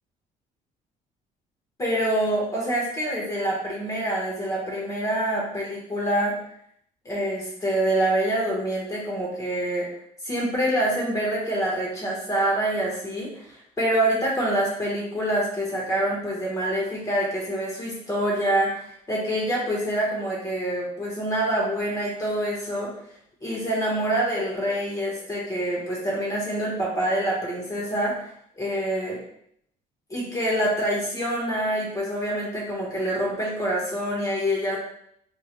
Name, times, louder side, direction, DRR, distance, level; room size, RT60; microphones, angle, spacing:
voice 1, 1.8-6.4 7.0-9.9 10.2-22.9 23.4-28.1 28.6-29.2 30.1-34.8, right 1 dB, 20° left, -4 dB, 1.3 m, -26 dB
4.4 x 3.2 x 2.2 m, 0.69 s
cardioid pair, 140°, 16 cm